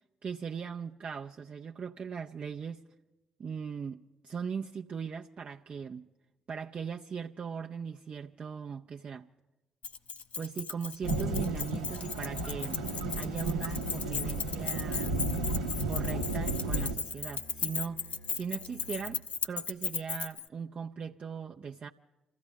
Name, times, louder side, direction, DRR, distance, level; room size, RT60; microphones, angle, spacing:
voice 1, 0.2-2.8 3.4-6.1 6.5-9.3 10.4-12.8 13.1-15.2 15.9-18.0 18.3-21.9, right 6 dB, 45° right, 0.6 m, -39 dB
Keys jangling, 9.8-20.5, left 5 dB, 50° left, 0.7 m, -36 dB
Thunderstorm / Rain, 11.0-16.9, right 2 dB, 85° right, 0.8 m, -33 dB
Musical instrument, 12.6-19.4, equal, 65° left, 1.4 m, -52 dB
28.0 x 15.0 x 3.5 m
figure-of-eight pair, 45°, 3 cm